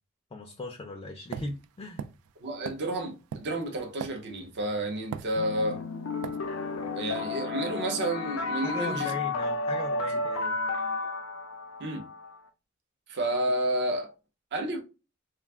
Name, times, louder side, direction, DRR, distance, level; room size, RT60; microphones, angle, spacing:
voice 1, 0.3-2.0 8.6-10.6, left 2 dB, 25° left, 0.3 m, -38 dB
sound 1, 1.3-4.6 5.1-5.8 6.2-6.4, right 7 dB, 90° right, 0.3 m, -39 dB
voice 2, 2.4-5.8 7.0-9.1 11.8-12.1 13.1-14.1 14.5-14.8, right 1 dB, 55° right, 0.6 m, -30 dB
sound 2, 5.4-12.4, left 3 dB, 90° left, 0.4 m, -32 dB
2.3 x 2.2 x 3.4 m
head